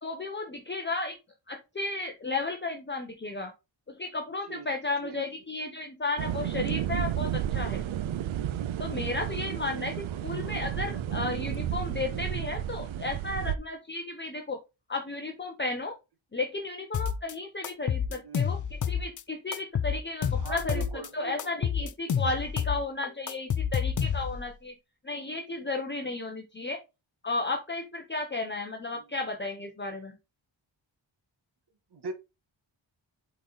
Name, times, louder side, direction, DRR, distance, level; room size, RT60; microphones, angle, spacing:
voice 1, 0.0-1.1 1.5-3.5 4.0-7.8 8.8-9.9 10.2-14.6 14.9-15.9 16.3-20.8 21.1-24.7 25.0-26.8 27.2-30.1, left 3 dB, 25° left, 0.9 m, -33 dB
sound 1, 6.2-13.6, right 10 dB, 90° right, 0.6 m, -32 dB
voice 2, 9.7-10.6 18.1-18.4 20.4-21.5 28.9-29.0 31.9-32.1, right 4 dB, 60° right, 1.5 m, -41 dB
sound 2, 16.9-17.3 17.6-19.2 19.5-21.1 21.4-24.5, left 7 dB, 45° left, 0.5 m, -29 dB
8.3 x 4.1 x 4.0 m
wide cardioid pair, 160°, 46 cm